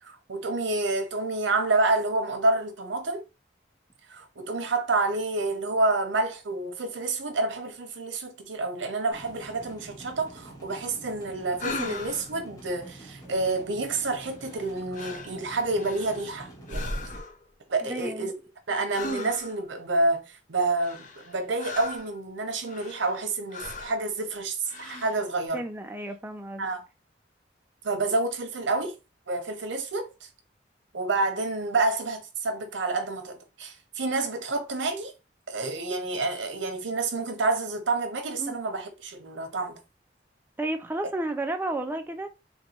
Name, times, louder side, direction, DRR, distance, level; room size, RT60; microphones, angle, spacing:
voice 1, 0.0-3.2 4.1-17.0 17.7-18.3 18.7-25.6 26.6-26.9 27.8-29.0 29.3-30.1 30.9-35.1 35.5-39.8, right 2 dB, 90° right, 0.7 m, -28 dB
sound 1, 9.1-17.2, right 1 dB, 20° left, 1.0 m, -47 dB
sound 2, 11.6-12.3 14.4-14.7 14.9-15.4 15.8-16.3 16.7-17.4 18.9-19.6 20.8-22.1 22.7-23.2 23.5-24.0 24.6-25.2, left 2 dB, 40° left, 0.6 m, -37 dB
voice 2, 17.8-18.3 25.5-26.6 38.4-38.6 40.6-42.3, right 2 dB, 10° right, 0.4 m, -32 dB
3.9 x 2.2 x 2.8 m
head